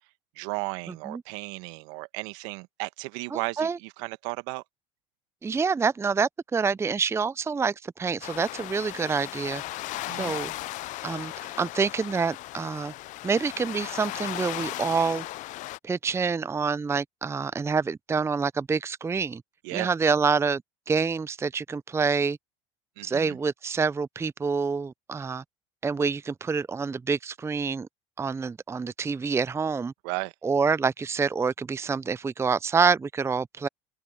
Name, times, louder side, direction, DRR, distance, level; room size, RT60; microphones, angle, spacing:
voice 1, 0.3-4.6 9.9-10.3 19.6-19.9 23.0-23.4 30.0-30.3, right 27 dB, 70° right, 1.4 m, -35 dB
voice 2, 3.3-3.8 5.4-9.8 10.2-10.5 11.0-12.9 13.2-15.3 15.8-19.4 19.7-20.6 20.9-22.4 23.0-25.4 25.8-27.9 28.2-29.9 30.4-33.7, right 5 dB, 15° right, 0.6 m, -27 dB
sound 1, 8.2-15.8, left 18 dB, 50° left, 0.5 m, -36 dB
open air
hypercardioid pair, 75°, 16 cm